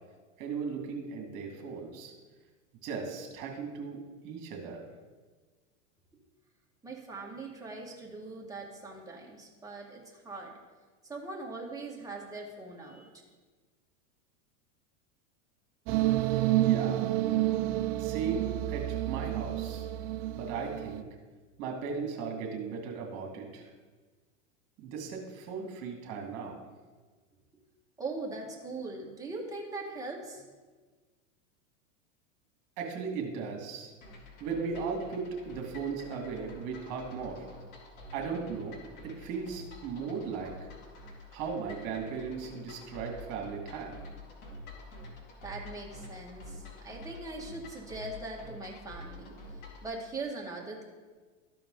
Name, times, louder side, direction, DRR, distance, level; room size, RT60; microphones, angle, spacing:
voice 1, 0.4-2.1 2.8-4.0 4.2-4.8 16.6-17.1 18.0-19.9 20.3-21.1 21.6-23.7 24.8-26.6 32.8-33.9 34.4-37.5 38.1-40.7 41.3-44.0, right 5 dB, 50° right, 1 dB, 2.3 m, -37 dB
voice 2, 6.8-10.5 11.0-13.1 28.0-30.4 45.4-50.8, right 3 dB, 10° right, -3 dB, 1.7 m, -41 dB
sound 1, 15.9-21.0, right 14 dB, 30° right, 0.4 m, -29 dB
sound 2, 34.0-49.9, left 1 dB, 55° left, 2.6 m, -48 dB
13.5 x 4.6 x 3.9 m, 1.4 s
hypercardioid pair, 120°, 41 cm